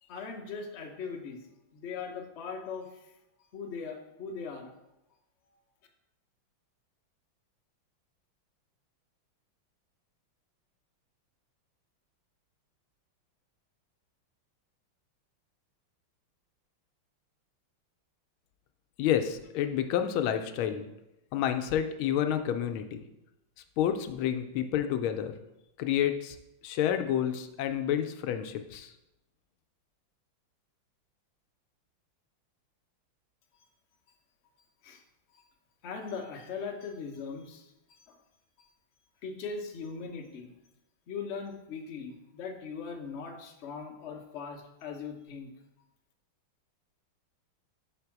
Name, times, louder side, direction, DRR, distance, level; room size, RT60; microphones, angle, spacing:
voice 1, 0.0-1.4 1.7-3.1 3.5-4.7 34.8-35.0 35.3-35.5 35.8-38.2 38.6-38.7 39.2-40.5 41.1-45.5, left 5 dB, 60° left, 2 dB, 0.7 m, -40 dB
voice 2, 19.0-20.8 21.3-23.0 23.8-25.4 25.8-26.4 26.6-28.9, left 10 dB, 80° left, 7 dB, 1.4 m, -29 dB
5.2 x 4.0 x 5.8 m, 0.91 s
omnidirectional pair, 2.3 m